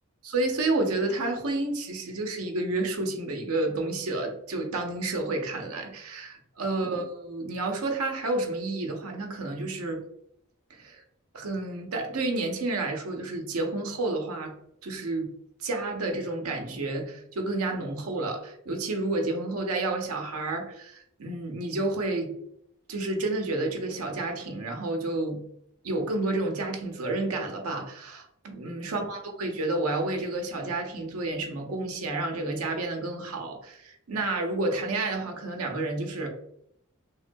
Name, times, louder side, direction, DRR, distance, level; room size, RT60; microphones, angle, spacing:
voice 1, 0.2-10.0 10.7-11.0 11.3-14.6 14.8-15.3 15.6-22.3 22.9-25.4 25.8-36.3, right 2 dB, 80° right, 0.6 m, -30 dB
3.5 x 2.2 x 2.5 m
head